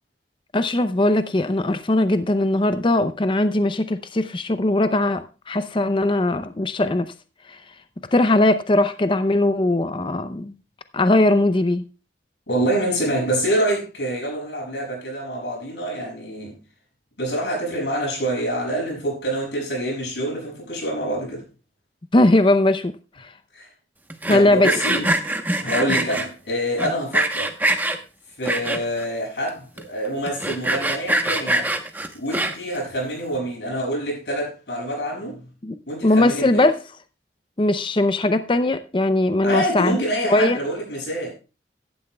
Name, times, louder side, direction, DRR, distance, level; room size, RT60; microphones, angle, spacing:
voice 1, 0.5-7.1 7.4-7.7 8.1-10.5 10.9-11.8 22.1-23.3 24.3-25.0 35.6-36.8 37.6-40.0 40.3-40.6, left 2 dB, 30° left, 0.5 m, -20 dB
voice 2, 12.5-16.5 17.2-21.4 23.5-23.7 24.3-25.1 25.6-27.5 28.4-31.7 32.1-35.5 35.9-36.6 39.4-41.3, right 1 dB, 80° left, 6.9 m, -26 dB
Sawing, 24.1-26.3 26.8-28.0 28.4-29.0 29.5-29.6 29.8-29.9 30.3-32.8, right 1 dB, 10° right, 1.0 m, -23 dB
15.5 x 12.0 x 2.3 m
head